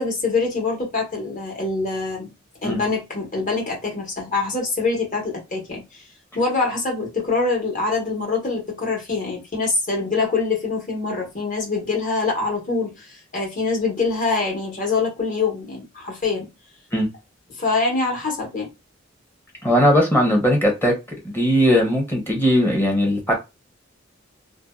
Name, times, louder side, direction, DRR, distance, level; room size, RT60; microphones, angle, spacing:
voice 1, 0.0-2.3 2.6-6.0 6.3-16.5 17.6-18.7, left 3 dB, 40° left, 1.1 m, -24 dB
voice 2, 19.6-20.9 21.2-23.3, equal, 10° left, 0.8 m, -18 dB
2.5 x 2.2 x 2.2 m
head